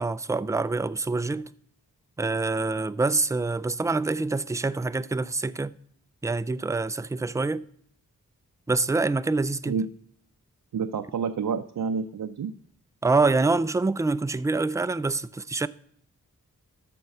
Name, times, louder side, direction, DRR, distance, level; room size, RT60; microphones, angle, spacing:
voice 1, 0.0-1.5 2.2-5.8 6.2-7.7 8.7-9.8 13.0-15.7, right 3 dB, 10° right, 0.3 m, -26 dB
voice 2, 10.7-12.5, right 6 dB, 75° right, 0.6 m, -29 dB
13.0 x 4.5 x 6.5 m
wide cardioid pair, 80°, 33 cm